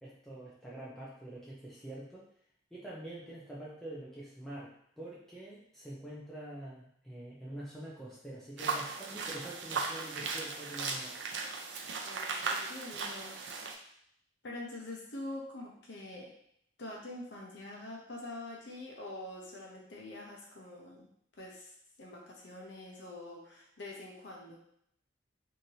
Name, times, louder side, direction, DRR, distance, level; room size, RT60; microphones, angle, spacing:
voice 1, 0.0-2.3 2.7-11.1, right 1 dB, ahead, -8 dB, 0.5 m, -46 dB
sound 1, 8.6-13.7, right 4 dB, 75° right, 0.5 m, -37 dB
voice 2, 12.0-13.4 14.4-16.3 16.8-21.1 21.4-21.7 22.0-24.6, left 2 dB, 65° left, -2 dB, 0.7 m, -45 dB
3.1 x 2.7 x 2.7 m, 0.69 s
head